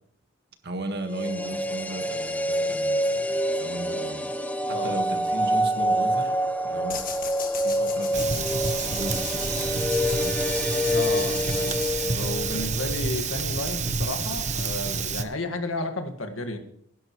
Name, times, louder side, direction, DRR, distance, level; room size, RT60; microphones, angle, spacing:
voice 1, 0.6-3.3 3.6-4.3 4.7-7.1 7.6-10.4 12.5-12.8, right 1 dB, 55° right, 1.7 m, -36 dB
sound 1, 1.0-13.1 13.4-13.5, equal, 5° left, 0.6 m, -27 dB
sound 2, 6.9-12.6, left 7 dB, 45° left, 1.8 m, -39 dB
Fire, 8.1-15.2, right 5 dB, 35° right, 0.9 m, -29 dB
voice 2, 10.9-16.6, left 2 dB, 90° left, 1.8 m, -32 dB
17.0 x 11.5 x 3.1 m
head